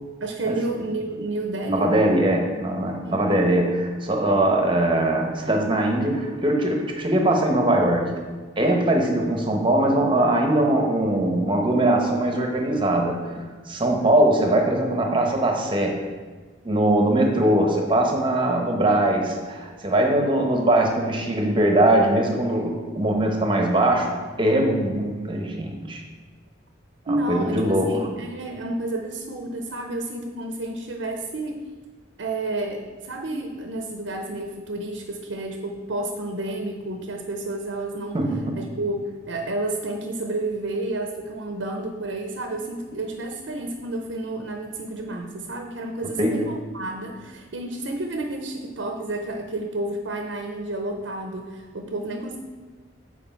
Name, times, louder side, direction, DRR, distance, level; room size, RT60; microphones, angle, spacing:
voice 1, 0.2-1.9 3.0-3.4 27.1-31.6 32.2-38.2 38.6-52.4, right 2 dB, 75° right, 4 dB, 0.6 m, -30 dB
voice 2, 1.7-8.1 8.6-16.0 16.6-26.0 27.1-28.1 38.1-38.6 46.2-46.4, right 1 dB, 25° right, 2 dB, 0.9 m, -21 dB
7.9 x 4.8 x 4.4 m, 1.4 s
head